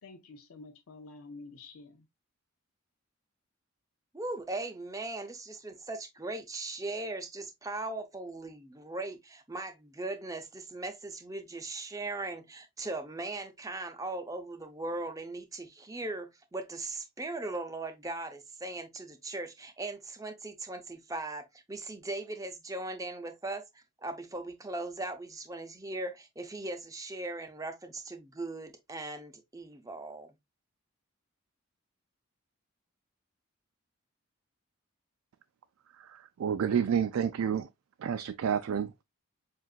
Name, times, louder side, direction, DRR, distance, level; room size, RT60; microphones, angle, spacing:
voice 1, 0.0-2.1, left 3 dB, 90° left, 0.6 m, -49 dB
voice 2, 4.1-30.3, right 2 dB, 15° right, 0.6 m, -39 dB
voice 3, 36.0-37.7 38.0-39.0, right 7 dB, 80° right, 0.3 m, -30 dB
7.4 x 2.5 x 2.4 m
head